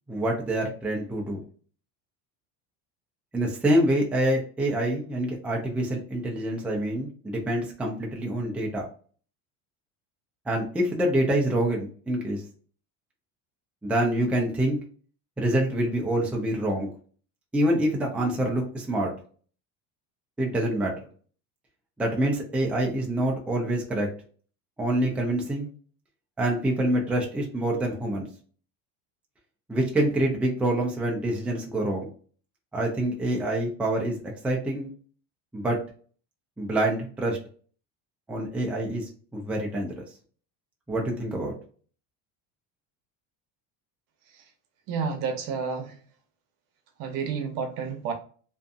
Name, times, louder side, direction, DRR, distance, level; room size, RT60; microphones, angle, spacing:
voice 1, 0.1-1.4 3.3-8.9 10.5-12.4 13.8-14.8 15.4-16.9 17.5-19.1 20.4-20.9 22.0-24.1 24.8-25.7 26.4-28.3 29.7-32.1 32.7-34.9 35.5-35.8 36.6-37.4 38.3-40.0 40.9-41.5, right 1 dB, 5° right, 0.4 m, -26 dB
voice 2, 44.9-45.8 47.0-48.1, right 5 dB, 60° right, 0.8 m, -30 dB
2.6 x 2.5 x 2.3 m
cardioid pair, 140°, 37 cm